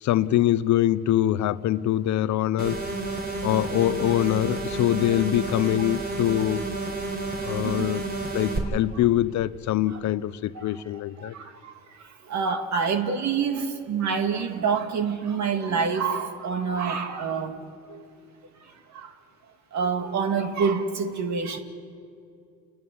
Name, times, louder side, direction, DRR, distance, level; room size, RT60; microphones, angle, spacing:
voice 1, 0.0-2.8 3.4-6.6 7.4-8.0 8.3-11.3, left 13 dB, 60° left, 0.7 m, -24 dB
sound 1, 2.6-8.6, right 3 dB, 30° right, 4.1 m, -31 dB
voice 2, 7.4-7.9 9.9-10.0 10.5-10.6 11.2-17.6 17.9-18.0 18.6-19.1 19.7-21.6, right 5 dB, 55° right, 2.2 m, -27 dB
29.5 x 10.5 x 9.6 m
supercardioid pair, 70°, 33 cm